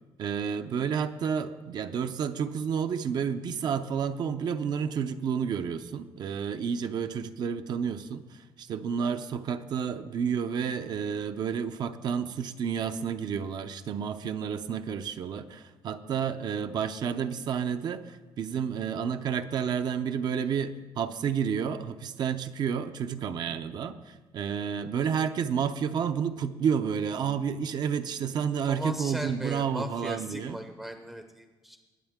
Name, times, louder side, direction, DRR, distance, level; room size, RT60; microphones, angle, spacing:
voice 1, 0.2-30.6, right 7 dB, 50° right, 9 dB, 0.6 m, -30 dB
voice 2, 28.6-31.8, right 1 dB, 5° right, 7 dB, 0.6 m, -37 dB
20.5 x 7.9 x 3.6 m, 1.3 s
cardioid pair, 155°, 9 cm